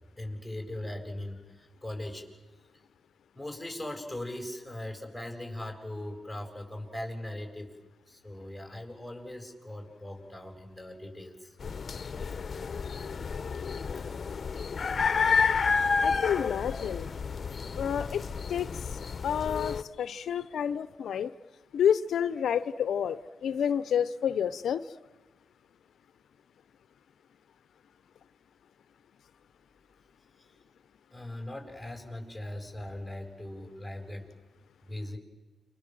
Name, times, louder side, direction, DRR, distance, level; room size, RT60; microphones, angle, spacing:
voice 1, 0.2-2.3 3.3-7.7 8.1-11.6 12.3-12.4 31.1-34.3 34.8-35.2, left 1 dB, 5° left, 3 dB, 7.9 m, -40 dB
sound 1, 11.6-19.8, left 5 dB, 50° left, 1.1 m, -30 dB
voice 2, 16.0-17.1 17.8-18.2 18.5-21.3 21.7-24.8, left 8 dB, 75° left, 14 dB, 0.8 m, -29 dB
29.0 x 25.5 x 7.8 m, 1.3 s
cardioid pair, 75°, 0 cm